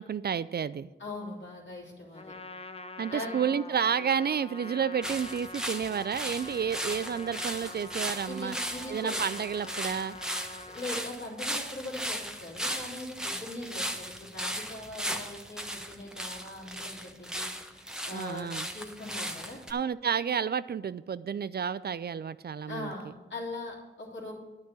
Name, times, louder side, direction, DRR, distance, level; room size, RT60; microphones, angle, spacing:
voice 1, 0.0-0.9 3.0-8.6 8.9-10.2 18.1-18.7 19.7-22.9, right 7 dB, 55° right, 17 dB, 0.4 m, -31 dB
voice 2, 1.0-2.4 3.1-3.4 8.3-9.2 10.7-18.5 18.7-19.6 22.7-24.3, left 2 dB, 65° left, -3 dB, 3.3 m, -41 dB
Trumpet, 2.1-11.2, left 2 dB, 30° left, 0.7 m, -45 dB
sound 1, 5.0-19.7, equal, 5° right, 1.2 m, -37 dB
10.5 x 6.4 x 7.0 m, 1.2 s
cardioid pair, 40°, 20 cm